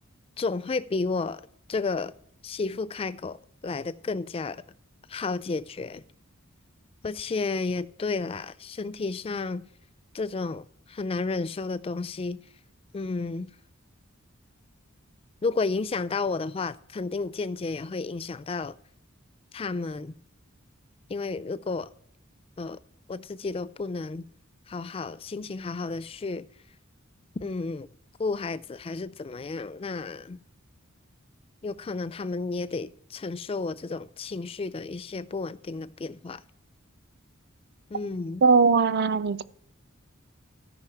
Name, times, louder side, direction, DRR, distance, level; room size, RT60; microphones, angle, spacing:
voice 1, 0.4-1.4 1.7-2.1 2.4-4.6 5.1-6.0 7.0-9.6 10.1-12.4 12.9-13.5 15.4-18.8 19.5-20.2 21.1-21.9 22.6-22.8 23.1-24.3 24.7-26.5 27.4-27.9 28.2-30.4 31.6-36.4 37.9-38.4, left 3 dB, 25° left, 0.4 m, -32 dB
voice 2, 38.4-39.4, right 4 dB, 50° right, 0.4 m, -20 dB
14.0 x 5.3 x 5.7 m
head